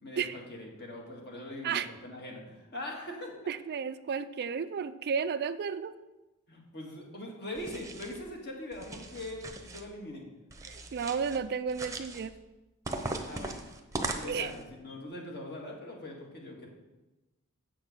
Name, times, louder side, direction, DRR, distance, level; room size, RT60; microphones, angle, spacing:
voice 1, 0.0-3.4 6.5-10.2 13.3-13.8 14.2-16.7, left 1 dB, 50° left, 0 dB, 1.9 m, -42 dB
voice 2, 3.5-6.0 10.7-12.3 14.2-14.5, right 6 dB, 45° right, 13 dB, 0.4 m, -33 dB
sound 1, 7.5-8.2 8.7-9.8 10.5-11.4 11.7-12.3 12.8-14.6, right 2 dB, 15° right, 0.8 m, -39 dB
7.6 x 6.2 x 6.5 m, 1.1 s
head